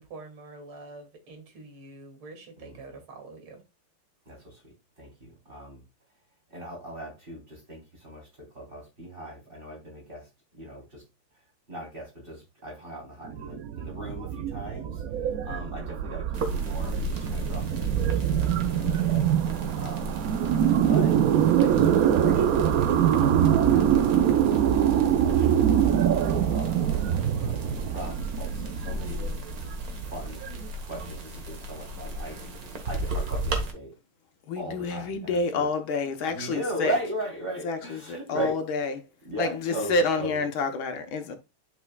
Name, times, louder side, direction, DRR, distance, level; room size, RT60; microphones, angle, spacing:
voice 1, 0.0-3.6, right 3 dB, 70° right, 3.1 m, -45 dB
voice 2, 2.6-3.0 4.3-5.8 6.5-11.0 11.3-19.3 19.7-20.1 20.9-21.2 21.6-25.7 26.2-27.0 27.3-29.3 30.1-30.4 30.8-33.9 34.6-35.7 36.3-38.6 39.2-40.5, right 1 dB, 25° right, 3.6 m, -38 dB
sound 1, 13.2-31.0, right 9 dB, 90° right, 0.7 m, -24 dB
beer foam - old record, 16.3-33.7, right 1 dB, 45° right, 1.7 m, -37 dB
voice 3, 34.5-36.9 37.6-37.8 38.1-39.0 39.4-41.4, left 3 dB, 70° left, 1.8 m, -28 dB
11.0 x 5.5 x 2.3 m
omnidirectional pair, 2.3 m